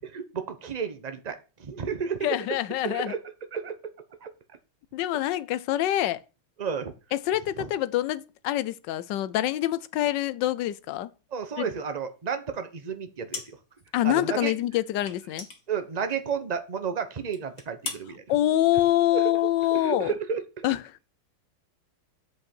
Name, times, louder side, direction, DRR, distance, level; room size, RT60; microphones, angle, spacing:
voice 1, 0.0-2.4 2.8-3.2 3.5-3.7 4.2-4.3 6.6-6.9 7.6-7.7 11.3-13.4 14.0-14.5 15.7-18.2 19.1-19.2 19.7-20.6, right 6 dB, 45° right, 0.5 m, -32 dB
voice 2, 2.2-3.1 4.9-6.2 7.1-11.1 11.6-11.7 13.9-15.5 18.3-20.1 20.6-21.0, left 14 dB, 75° left, 1.1 m, -25 dB
sound 1, 13.3-13.9 14.1-14.2 15.0-16.4 16.8-16.9 17.3-18.0, left 4 dB, 40° left, 1.9 m, -39 dB
8.0 x 5.5 x 4.3 m
omnidirectional pair, 2.2 m